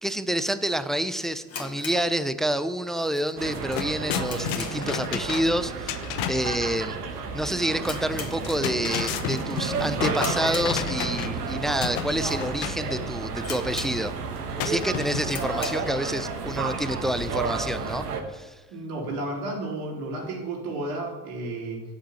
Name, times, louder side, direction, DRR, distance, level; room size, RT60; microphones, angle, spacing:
voice 1, 0.0-7.0 7.3-14.1 14.6-18.5, right 1 dB, ahead, 12 dB, 0.5 m, -28 dB
sound 1, 1.4-2.8 3.1-3.2 3.7-5.1 5.3-5.6 5.9-6.0 6.7-7.0 7.3-7.4 7.8-8.9 9.3-9.6 10.1-11.2 11.8-11.9 12.5-12.6 12.9-13.0 13.4-14.4 14.7-14.8 15.2-15.9, left 5 dB, 30° left, 2.2 m, -39 dB
sound 2, 3.1-3.2 3.5-6.6 8.3-11.5 11.8-12.8 14.6-15.5, left 10 dB, 55° left, 1.0 m, -32 dB
sound 3, 3.4-18.2, right 4 dB, 85° right, 1.4 m, -32 dB
voice 2, 18.7-21.8, right 2 dB, 70° right, -1 dB, 3.9 m, -32 dB
8.3 x 7.4 x 8.6 m, 1.2 s
hypercardioid pair, 70°, 45 cm